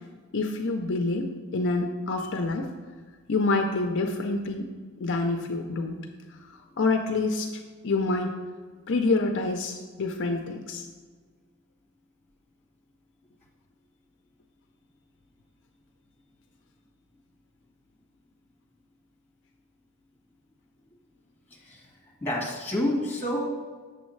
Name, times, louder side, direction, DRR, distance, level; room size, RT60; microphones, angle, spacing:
voice 1, 0.3-2.7 3.3-4.7 5.0-6.0 6.8-7.5 7.8-8.4 8.9-10.8, left 3 dB, 55° left, 4 dB, 0.5 m, -27 dB
voice 2, 21.5-23.5, left 1 dB, 10° left, -3 dB, 1.6 m, -29 dB
7.1 x 7.0 x 3.2 m, 1.5 s
head